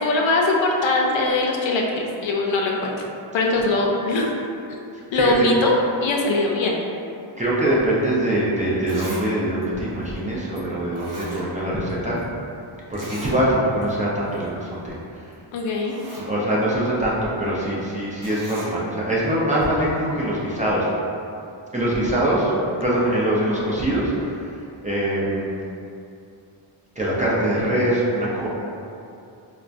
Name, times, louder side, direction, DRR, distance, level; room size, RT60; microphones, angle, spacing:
voice 1, 0.0-2.9 3.3-4.3 5.1-6.8 15.5-15.9, left 2 dB, 65° left, 0 dB, 0.6 m, -21 dB
voice 2, 7.4-12.2 12.9-15.2 16.2-20.9 21.7-22.5 22.8-24.6 24.8-25.5 27.0-28.5, right 1 dB, 15° right, -7 dB, 0.6 m, -23 dB
Zipper (clothing), 8.9-9.3 9.6-9.7 10.6-10.7 10.9-11.9 12.2-12.3 12.9-13.4 13.8-13.9 14.3-14.5 15.3-15.4 15.7-16.3 18.2-18.7 19.6-19.7, right 1 dB, 40° right, 0.9 m, -38 dB
4.4 x 2.2 x 2.5 m, 2.6 s
cardioid pair, 90°, 49 cm